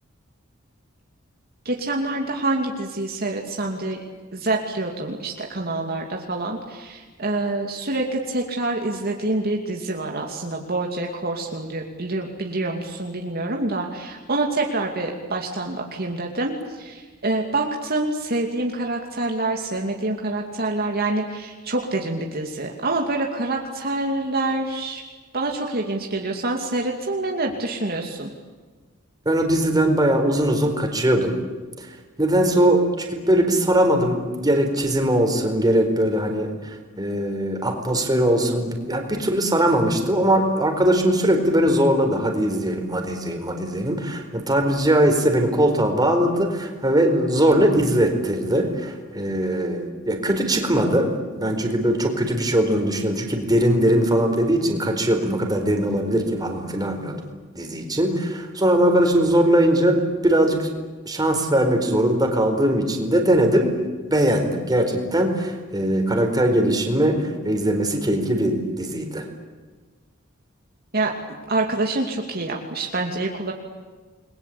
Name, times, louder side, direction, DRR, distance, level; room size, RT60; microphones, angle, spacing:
voice 1, 1.6-4.0 4.3-25.0 25.3-28.3 70.9-71.1 71.5-73.5, right 2 dB, 50° right, 1 dB, 2.6 m, -26 dB
voice 2, 29.2-31.3 31.8-31.9 32.2-57.2 57.6-60.7 61.1-63.8 64.1-69.2, right 1 dB, 20° right, 4 dB, 4.4 m, -20 dB
30.0 x 22.0 x 8.6 m, 1.4 s
head